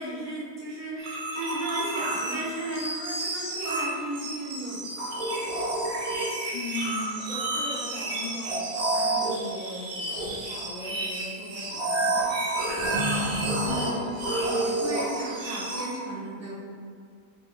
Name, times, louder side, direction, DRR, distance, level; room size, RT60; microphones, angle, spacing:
voice 1, 0.0-5.1 13.5-16.5, right 1 dB, 20° right, -11 dB, 0.5 m, -35 dB
sound 1, 1.0-15.9, right 2 dB, 70° right, 1.2 m, -30 dB
voice 2, 6.5-12.4, left 2 dB, 40° left, -10 dB, 1.3 m, -38 dB
3.6 x 3.3 x 2.2 m, 2.2 s
omnidirectional pair, 1.6 m